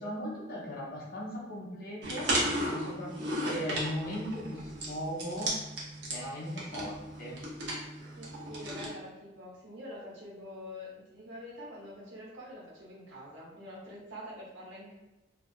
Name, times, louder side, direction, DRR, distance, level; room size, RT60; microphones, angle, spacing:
voice 1, 0.0-2.4 2.7-5.6 6.0-7.4, equal, 50° left, -5 dB, 0.6 m, -38 dB
sound 1, 2.0-8.9, right 1 dB, 65° right, 0.7 m, -35 dB
voice 2, 8.2-14.9, left 1 dB, 80° right, -6 dB, 1.1 m, -46 dB
2.6 x 2.3 x 2.3 m, 1.0 s
head